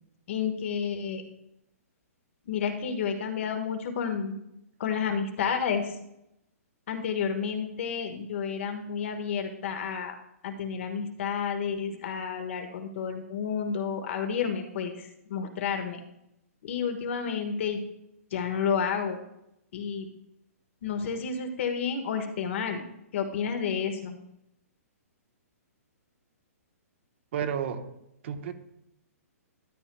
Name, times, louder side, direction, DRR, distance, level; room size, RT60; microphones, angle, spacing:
voice 1, 0.3-1.2 2.5-4.4 4.8-5.9 6.9-10.2 10.4-16.0 16.6-17.8 18.3-19.2 19.7-20.1 20.8-22.8 23.1-24.1, left 6 dB, 50° left, 6 dB, 1.3 m, -30 dB
voice 2, 27.3-27.8 28.2-28.5, right 8 dB, 50° right, 7 dB, 1.0 m, -31 dB
12.5 x 9.9 x 2.3 m, 0.81 s
hypercardioid pair, 155°, 8 cm